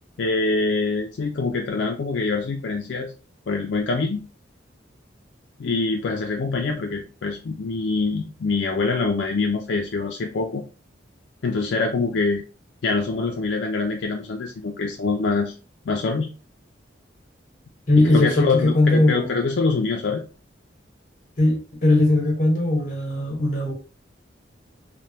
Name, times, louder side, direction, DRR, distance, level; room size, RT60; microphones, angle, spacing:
voice 1, 0.2-3.1 3.5-4.2 5.6-10.6 11.4-12.4 12.8-15.5 15.9-16.3 18.0-20.2, left 3 dB, 70° left, 0.4 m, -24 dB
voice 2, 17.9-19.4 21.4-23.7, left 2 dB, 40° left, 1.1 m, -19 dB
3.3 x 2.2 x 2.7 m
head